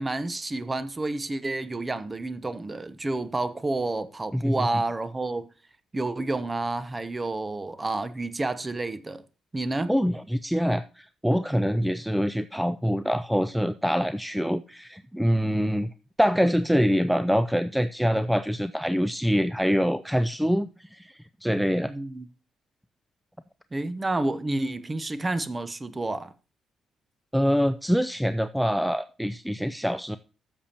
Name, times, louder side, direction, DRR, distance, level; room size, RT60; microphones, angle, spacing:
voice 1, 0.0-5.5 5.9-9.2 9.5-9.9 21.9-22.3 23.7-26.3, right 2 dB, 20° right, 0.8 m, -29 dB
voice 2, 4.3-4.7 9.9-21.9 27.3-30.2, equal, ahead, 0.4 m, -25 dB
14.0 x 6.9 x 2.9 m
cardioid pair, 90°, 0 cm